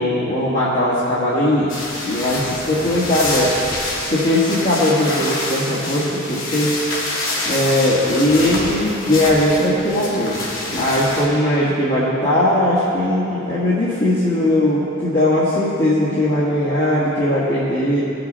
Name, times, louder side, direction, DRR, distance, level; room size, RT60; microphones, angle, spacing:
voice 1, 0.0-1.7 2.0-3.5 4.1-6.8 7.5-18.0, left 1 dB, 40° left, -10 dB, 1.6 m, -19 dB
sound 1, 1.7-11.3, left 2 dB, 75° left, 2.4 m, -27 dB
18.5 x 6.8 x 4.0 m, 2.9 s
head